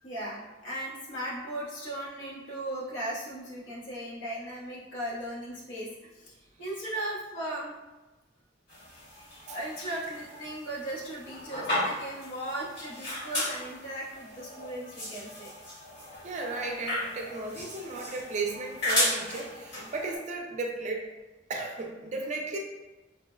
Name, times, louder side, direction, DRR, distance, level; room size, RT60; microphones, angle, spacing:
voice 1, 0.0-7.7 9.5-15.5, right 1 dB, 90° left, -5 dB, 0.9 m, -37 dB
sound 1, 8.7-20.2, left 1 dB, 60° left, 1.3 m, -35 dB
voice 2, 16.2-21.1 21.5-22.6, right 3 dB, 40° right, 0 dB, 0.4 m, -35 dB
4.2 x 2.0 x 2.3 m, 1.1 s
head